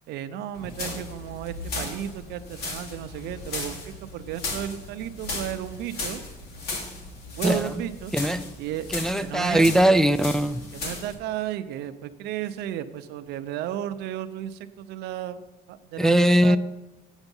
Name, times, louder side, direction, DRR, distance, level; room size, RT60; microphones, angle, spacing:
voice 1, 0.1-6.2 7.3-8.1 8.6-8.9 9.2-9.7 10.7-15.4 15.7-16.6, right 11 dB, 85° right, 11 dB, 0.6 m, -34 dB
sound 1, 0.5-11.1, left 2 dB, 70° left, 2.8 m, -36 dB
voice 2, 8.9-10.6 16.0-16.6, right 1 dB, 5° left, 9 dB, 0.3 m, -20 dB
8.1 x 8.1 x 5.4 m, 1.0 s
cardioid pair, 110°, 17 cm